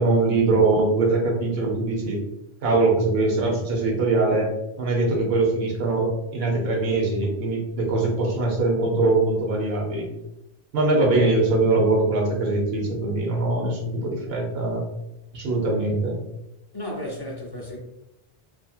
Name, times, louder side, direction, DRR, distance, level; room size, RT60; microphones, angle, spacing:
voice 1, 0.0-2.2 2.6-4.5 4.8-10.1 10.7-14.8 15.3-16.2, right 2 dB, 70° right, 1.0 m, -22 dB
voice 2, 16.7-17.8, left 1 dB, 30° left, 0.5 m, -33 dB
2.7 x 2.6 x 2.3 m
omnidirectional pair, 1.1 m